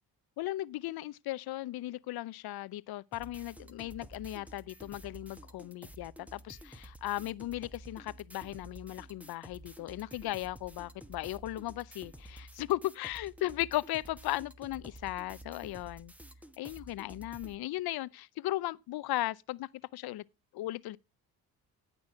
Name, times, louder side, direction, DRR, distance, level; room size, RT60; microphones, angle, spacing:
voice 1, 0.4-16.1 16.6-20.2 20.5-21.0, left 16 dB, 65° left, 0.7 m, -37 dB
sound 1, 3.1-17.5, right 1 dB, 5° right, 1.2 m, -51 dB
16.0 x 6.2 x 4.8 m
supercardioid pair, 60°, 40 cm